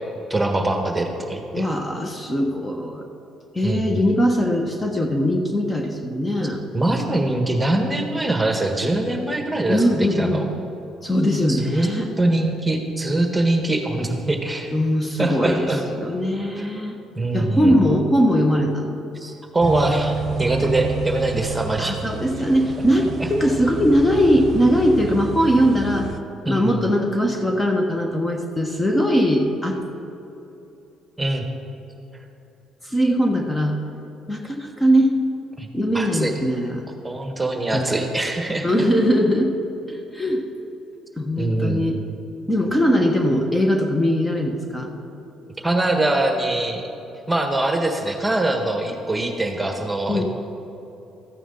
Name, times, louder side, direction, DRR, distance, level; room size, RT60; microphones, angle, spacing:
voice 1, 0.3-1.7 3.6-4.0 6.7-10.4 11.5-11.9 12.2-14.7 15.2-15.8 16.6-16.7 17.1-17.8 19.1-21.9 23.2-23.3 26.4-26.9 31.2-31.5 35.6-35.7 35.9-36.3 37.0-38.7 41.4-41.8 45.6-46.8 47.3-50.2, right 2 dB, 15° right, 4 dB, 1.5 m, -23 dB
voice 2, 1.5-3.0 3.5-6.6 9.7-10.4 11.0-12.1 14.7-15.7 15.9-17.0 17.3-18.9 21.8-26.1 26.5-29.8 32.8-33.8 34.3-35.1 35.7-36.8 37.7-38.0 38.6-39.5 39.9-40.4 41.2-42.0 42.5-44.9 50.1-50.2, equal, 15° left, 3 dB, 1.3 m, -20 dB
sound 1, 19.6-26.2, right 5 dB, 45° right, 0.8 m, -30 dB
14.0 x 9.2 x 3.9 m, 3.0 s
supercardioid pair, 60°, 0 cm